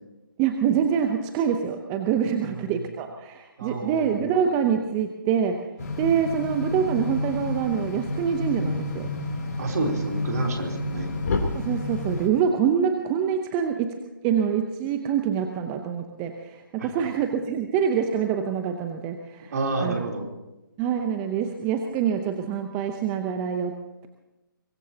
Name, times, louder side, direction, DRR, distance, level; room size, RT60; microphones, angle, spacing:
voice 1, 0.4-5.6 6.0-9.1 11.5-13.9 14.2-19.5 19.8-20.0 20.8-23.8, right 8 dB, 15° right, 5 dB, 0.8 m, -25 dB
voice 2, 3.6-4.2 9.6-11.1 16.8-17.1 19.5-20.3, right 3 dB, 50° right, 1 dB, 3.6 m, -29 dB
sound 1, 5.8-12.3, left 2 dB, 45° left, 3.3 m, -30 dB
23.5 x 18.5 x 2.9 m, 1.0 s
figure-of-eight pair, 150°, 12 cm